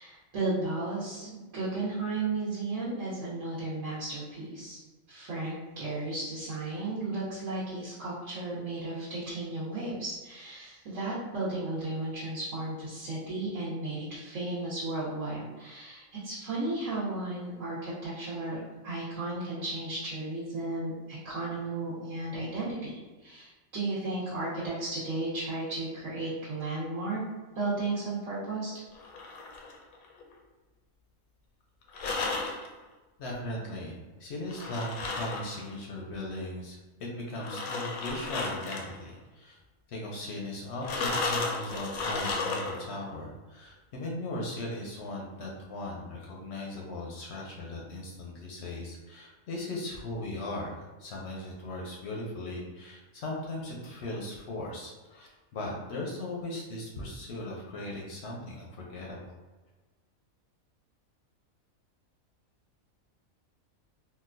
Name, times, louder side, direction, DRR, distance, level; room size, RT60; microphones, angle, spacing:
voice 1, 0.0-4.8 5.1-27.2 27.5-28.7, right 2 dB, 70° right, -10 dB, 1.2 m, -34 dB
sound 1, 28.9-30.3 31.9-32.7 34.5-35.7 37.3-39.0 40.8-42.9, left 3 dB, 85° left, 1.0 m, -34 dB
voice 2, 33.2-39.6 39.9-59.4, left 1 dB, 65° left, -2 dB, 0.8 m, -38 dB
3.8 x 2.2 x 2.5 m, 1.2 s
omnidirectional pair, 1.4 m